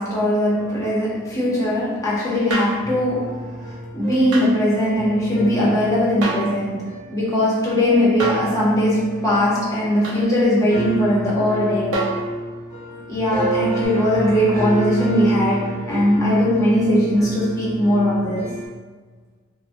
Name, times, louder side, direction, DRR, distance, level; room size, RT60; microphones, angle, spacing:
voice 1, 0.0-12.0 13.1-18.5, equal, 15° left, -8 dB, 0.7 m, -20 dB
sound 1, 0.5-1.8 2.4-2.5 2.8-18.7, right 1 dB, 40° right, 0.9 m, -31 dB
sound 2, 2.5-2.8 4.3-4.5 6.2-6.6 8.2-8.5 10.0-10.2 11.9-12.3 13.8-13.9, right 3 dB, 85° right, 0.6 m, -26 dB
3.5 x 2.1 x 2.5 m, 1.4 s
head